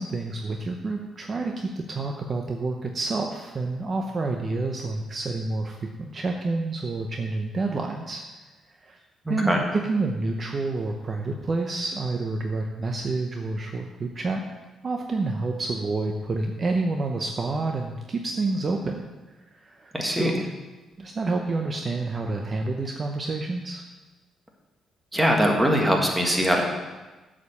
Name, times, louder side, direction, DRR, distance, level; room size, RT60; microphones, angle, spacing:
voice 1, 0.0-8.2 8.7-9.0 9.3-14.4 14.8-20.4 21.0-23.8, right 3 dB, 35° right, 2 dB, 0.7 m, -29 dB
voice 2, 9.2-9.6 19.9-20.3 25.1-26.7, equal, 10° right, 1 dB, 1.7 m, -22 dB
8.1 x 5.1 x 7.0 m, 1.2 s
cardioid pair, 90°, 0 cm